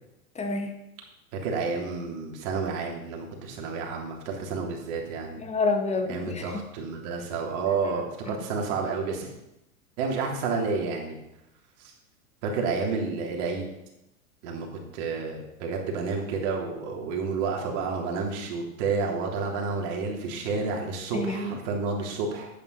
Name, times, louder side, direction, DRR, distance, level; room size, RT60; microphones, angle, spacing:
voice 1, 0.4-0.7 5.4-6.5 8.3-8.4 21.1-21.6, left 3 dB, 15° left, 5 dB, 1.8 m, -28 dB
voice 2, 1.3-5.4 6.1-9.3 10.0-11.2 11.8-11.9 12.4-13.7 14.4-14.7 14.9-22.5, right 4 dB, 50° right, 0 dB, 3.5 m, -30 dB
10.5 x 9.1 x 5.8 m, 0.90 s
hypercardioid pair, 105°, 43 cm